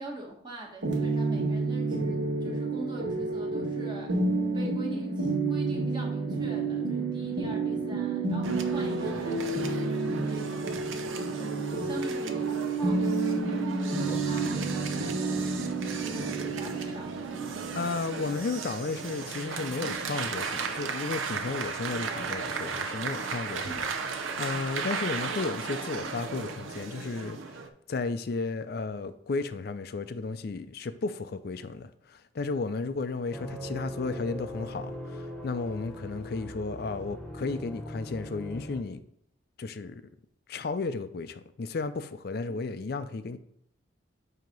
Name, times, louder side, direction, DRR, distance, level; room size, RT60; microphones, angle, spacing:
voice 1, 0.0-4.2 4.5-11.0 11.3-15.6 16.0-17.7 23.6-23.8, right 1 dB, 25° right, 1.3 m, -41 dB
sound 1, 0.8-20.4, right 3 dB, 70° right, 1.5 m, -30 dB
sound 2, 8.4-27.7, right 5 dB, 85° right, 0.6 m, -36 dB
voice 2, 17.8-23.8 24.2-39.0 39.6-40.0 40.5-43.4, left 3 dB, 50° left, 0.4 m, -34 dB
sound 3, 33.3-38.8, left 1 dB, 5° left, 0.8 m, -40 dB
7.7 x 2.9 x 5.2 m
head